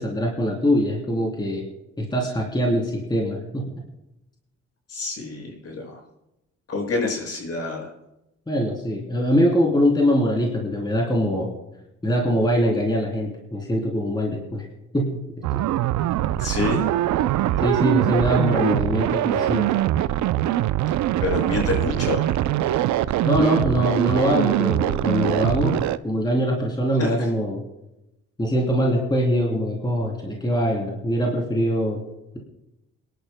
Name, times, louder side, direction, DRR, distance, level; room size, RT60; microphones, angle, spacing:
voice 1, 0.0-1.7 2.0-3.6 8.5-11.5 12.0-14.6 14.9-15.2 17.6-19.7 23.2-27.6 28.4-32.0, equal, 15° left, -2 dB, 3.3 m, -23 dB
voice 2, 4.9-6.0 6.7-7.9 16.4-16.8 21.2-22.3 27.0-27.3, left 3 dB, 55° left, -1 dB, 6.3 m, -27 dB
sound 1, 15.4-26.0, right 13 dB, 75° right, 0.5 m, -22 dB
28.5 x 11.5 x 2.2 m, 0.90 s
cardioid pair, 90°, 29 cm